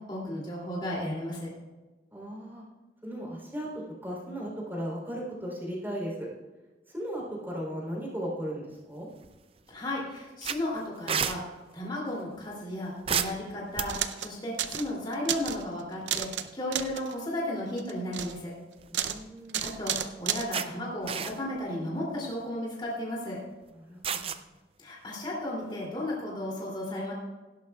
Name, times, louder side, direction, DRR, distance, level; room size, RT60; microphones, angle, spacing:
voice 1, 0.0-1.5 9.7-11.4 11.7-18.5 19.6-23.4 24.8-27.1, left 1 dB, 25° left, -4 dB, 2.8 m, -34 dB
voice 2, 2.1-2.6 3.0-6.3 6.9-9.1 18.9-19.7 23.8-24.4, equal, 10° right, -4 dB, 3.6 m, -36 dB
sound 1, 9.1-9.6 9.9-10.0 10.4-11.4 13.1-14.2 15.8-16.1 16.4-16.5 18.5-19.2 19.7-19.8 20.5-20.7 21.0-21.6 22.2-22.4 24.0-24.4, right 7 dB, 30° right, 0.5 m, -31 dB
sound 2, 13.9-14.3 14.6-14.9 15.1-15.6 16.1-16.5 16.7-17.2 17.8-18.3 18.9-19.2 19.5-20.5, right 10 dB, 85° right, 0.6 m, -31 dB
17.0 x 11.5 x 2.4 m, 1.2 s
head